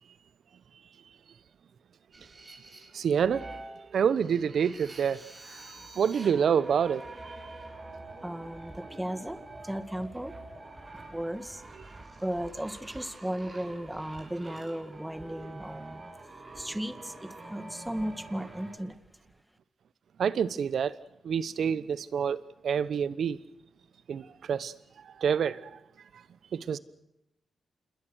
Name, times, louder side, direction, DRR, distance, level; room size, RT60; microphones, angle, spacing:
sound 1, 2.1-18.8, right 2 dB, 35° right, 7.0 m, -47 dB
voice 1, 2.9-3.4 3.9-5.2 5.9-7.3 20.2-20.9 21.2-23.4 24.1-24.7 25.1-25.7 26.5-26.8, right 7 dB, 70° right, 1.0 m, -27 dB
voice 2, 8.2-10.4 10.9-11.6 12.2-16.0 16.6-19.0, right 1 dB, 10° right, 2.1 m, -36 dB
27.5 x 21.5 x 6.5 m
supercardioid pair, 50°, 0 cm